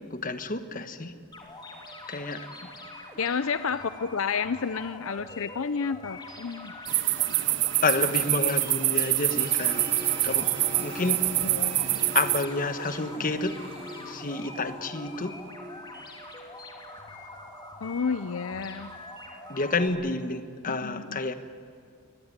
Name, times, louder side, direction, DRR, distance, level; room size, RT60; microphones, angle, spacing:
voice 1, 0.1-1.1 2.1-2.5 7.8-9.8 10.2-10.5 10.8-11.2 12.1-13.5 14.1-15.3 19.5-21.3, left 3 dB, 40° left, 10 dB, 1.2 m, -29 dB
sound 1, 1.3-19.9, left 1 dB, 20° left, 3.0 m, -44 dB
voice 2, 3.2-6.7 11.4-12.0 17.8-18.9 20.7-21.2, left 5 dB, 70° left, 13 dB, 0.6 m, -31 dB
sound 2, 6.9-12.4, right 17 dB, 55° right, 0.6 m, -26 dB
sound 3, 9.4-15.8, equal, 30° right, 3.6 m, -42 dB
23.5 x 18.5 x 9.7 m, 2.2 s
head